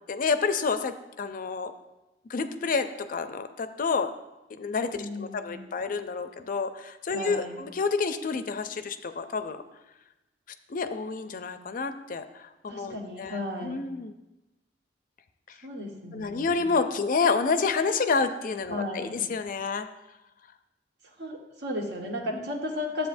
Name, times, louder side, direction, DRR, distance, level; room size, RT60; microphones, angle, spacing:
voice 1, 0.1-1.7 2.3-4.1 4.6-9.6 10.7-14.1 16.1-19.9 22.3-22.5, left 4 dB, 50° left, 10 dB, 0.5 m, -29 dB
voice 2, 5.0-5.8 7.1-7.6 12.7-13.8 15.6-16.6 18.7-19.2 21.2-23.1, left 1 dB, 65° right, 1 dB, 1.3 m, -35 dB
11.0 x 7.7 x 2.6 m, 1.0 s
head